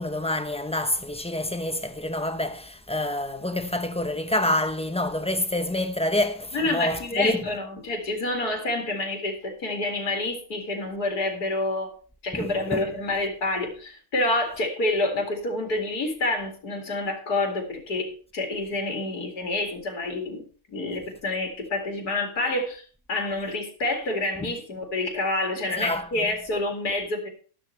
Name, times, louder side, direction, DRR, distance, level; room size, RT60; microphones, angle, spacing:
voice 1, 0.0-7.4 12.3-12.9 24.4-24.5 25.8-26.3, left 1 dB, 5° left, 0.4 m, -27 dB
voice 2, 6.5-11.9 12.2-22.8 23.1-27.3, left 2 dB, 75° left, 2.9 m, -28 dB
12.5 x 12.0 x 3.3 m
omnidirectional pair, 1.7 m